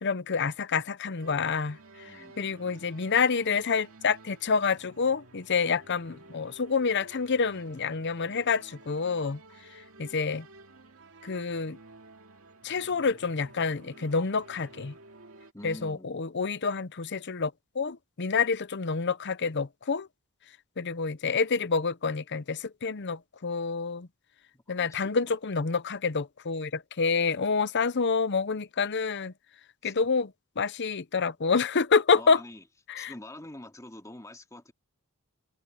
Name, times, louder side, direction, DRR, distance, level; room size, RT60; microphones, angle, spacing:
voice 1, 0.0-1.8 2.4-9.4 10.0-10.5 11.2-11.8 12.6-14.9 15.6-17.5 17.8-20.1 20.8-24.1 24.7-29.3 29.8-30.3 30.6-32.4 32.9-33.1, left 5 dB, 55° left, 0.7 m, -28 dB
sound 1, 1.2-15.5, right 2 dB, 70° right, 2.4 m, -52 dB
voice 2, 2.0-2.4 15.5-16.2 24.5-25.0 29.8-29.9 32.1-32.7 33.0-34.7, left 1 dB, 15° left, 2.5 m, -45 dB
head